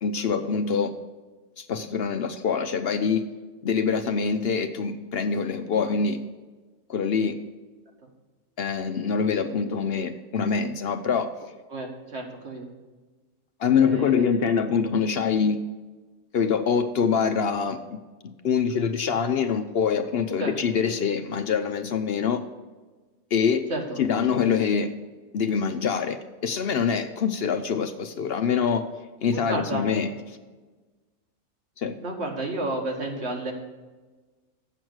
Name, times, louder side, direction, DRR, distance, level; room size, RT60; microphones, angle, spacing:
voice 1, 0.0-0.9 1.6-3.3 3.6-6.2 6.9-7.4 8.6-11.3 13.6-15.6 16.3-22.4 23.3-23.7 24.0-24.9 25.3-28.9 29.2-30.4 31.8-32.0, left 6 dB, 60° left, 8 dB, 0.7 m, -25 dB
voice 2, 11.7-12.7 13.7-14.3 20.4-20.5 23.7-24.0 29.3-29.9 32.0-33.5, right 2 dB, 60° right, 1 dB, 1.8 m, -31 dB
7.8 x 6.1 x 7.8 m, 1.3 s
omnidirectional pair, 1.3 m